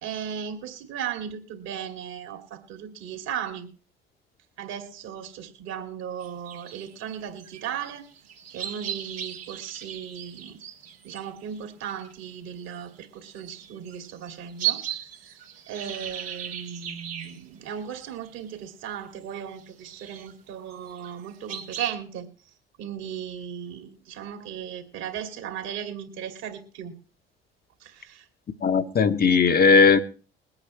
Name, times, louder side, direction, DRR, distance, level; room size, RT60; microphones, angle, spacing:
voice 1, 0.0-3.7 4.6-8.1 8.5-10.6 11.0-14.8 15.2-15.4 15.7-22.3 22.8-26.9 27.8-28.3, right 8 dB, 60° right, 2.4 m, -36 dB
sound 1, 6.2-18.6 18.9-19.2 19.6-20.3 20.7-21.9, right 11 dB, 75° right, 1.8 m, -37 dB
voice 2, 28.6-30.0, left 5 dB, 30° left, 1.1 m, -18 dB
22.5 x 8.8 x 3.1 m
figure-of-eight pair, 55°, 30 cm